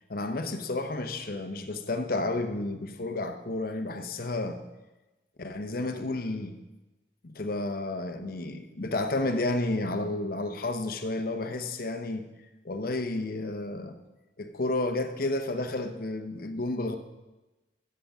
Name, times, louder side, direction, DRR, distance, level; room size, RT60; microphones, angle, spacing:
voice 1, 0.1-4.6 5.4-6.6 7.2-12.3 12.6-14.0 14.4-17.0, left 2 dB, 55° left, 7 dB, 0.8 m, -31 dB
13.0 x 8.5 x 3.6 m, 1.1 s
head